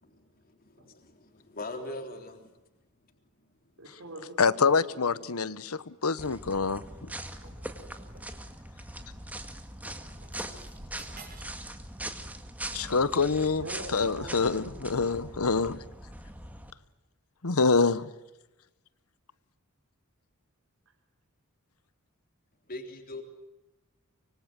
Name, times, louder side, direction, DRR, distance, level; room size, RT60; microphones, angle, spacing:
voice 1, 0.0-2.5 22.7-23.2, left 2 dB, 40° left, 4 dB, 3.6 m, -41 dB
voice 2, 3.8-5.5 13.6-15.2 20.9-21.0, right 1 dB, 65° right, 1 dB, 4.8 m, -44 dB
voice 3, 4.4-7.1 12.7-13.6 13.9-15.8 17.4-18.1, left 4 dB, 80° left, 16 dB, 1.1 m, -26 dB
sound 1, 6.2-16.7, right 1 dB, 5° right, 2.0 m, -41 dB
sound 2, 7.4-8.4 9.3-9.4 9.8-11.6 11.9-12.2 13.1-13.4 14.2-14.3, right 3 dB, 40° right, 6.2 m, -52 dB
25.5 x 24.5 x 7.6 m, 0.99 s
head